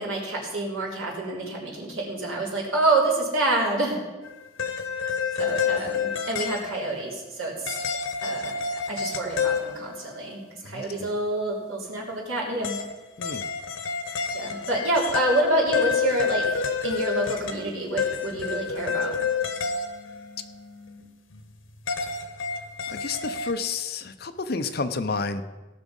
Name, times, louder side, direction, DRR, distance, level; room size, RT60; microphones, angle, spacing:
voice 1, 0.0-4.0 5.4-7.8 8.2-8.5 8.9-12.8 14.3-16.4 16.8-19.1, right 2 dB, 90° right, -3 dB, 3.6 m, -27 dB
sound 1, 4.2-6.9 7.7-10.2 12.6-21.0 21.3-23.5, left 6 dB, 80° left, 1.1 m, -29 dB
voice 2, 10.6-11.1 13.2-13.5 22.9-25.4, left 4 dB, 50° left, 10 dB, 0.7 m, -30 dB
17.5 x 6.1 x 5.4 m, 1.2 s
head